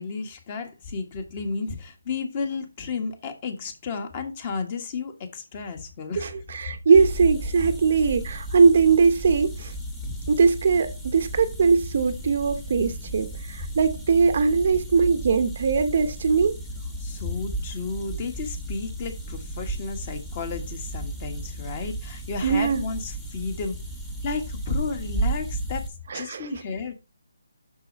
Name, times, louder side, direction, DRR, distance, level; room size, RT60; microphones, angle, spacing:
voice 1, 0.0-6.3 17.0-23.8 24.2-25.9 26.1-26.9, left 4 dB, 25° left, 1.5 m, -32 dB
voice 2, 6.2-9.7 10.3-16.6 22.4-22.8 26.1-26.6, right 5 dB, 40° right, 0.8 m, -21 dB
sound 1, 6.9-25.9, right 2 dB, 5° left, 1.3 m, -34 dB
8.0 x 6.4 x 4.0 m
hypercardioid pair, 170°, 0 cm